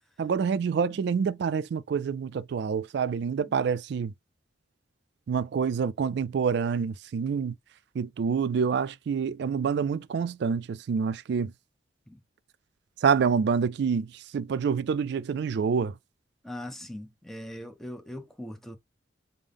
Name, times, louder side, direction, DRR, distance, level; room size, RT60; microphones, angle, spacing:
voice 1, 0.2-4.1 5.3-7.5 7.9-11.5 13.0-15.9, right 6 dB, 60° right, 0.3 m, -27 dB
voice 2, 16.4-18.8, left 1 dB, ahead, 0.5 m, -40 dB
5.4 x 2.0 x 3.4 m
head